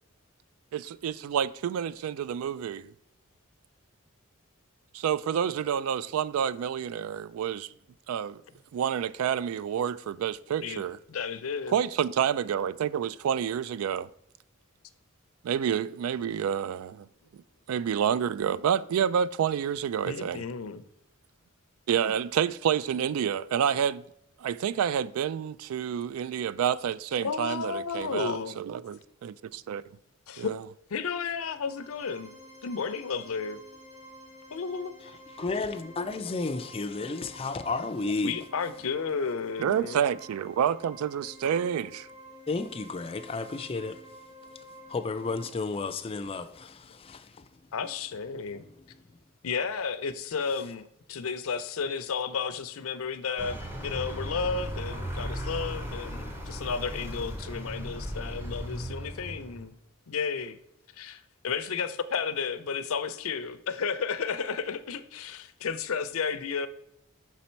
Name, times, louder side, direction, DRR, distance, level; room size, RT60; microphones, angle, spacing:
voice 1, 0.7-2.8 4.9-7.7 8.1-8.4 8.7-11.0 11.7-14.1 15.4-17.1 17.7-20.4 21.9-24.0 24.4-29.8 30.4-30.6 39.6-42.1, right 8 dB, 90° right, 0.3 m, -29 dB
voice 2, 11.1-11.8 20.1-20.8 27.2-28.6 30.3-30.6 30.9-32.3 32.6-33.6 34.5-34.9 38.2-40.0 47.7-48.6 49.4-59.7 60.1-60.6 60.9-66.7, left 5 dB, 85° left, 0.5 m, -33 dB
sound 1, 31.4-45.4, equal, 35° right, 2.5 m, -50 dB
voice 3, 35.4-38.3 42.5-44.1 44.9-47.5, left 3 dB, 25° left, 0.4 m, -32 dB
Vehicle, 53.4-59.8, equal, 10° right, 0.7 m, -36 dB
5.9 x 4.1 x 4.4 m
head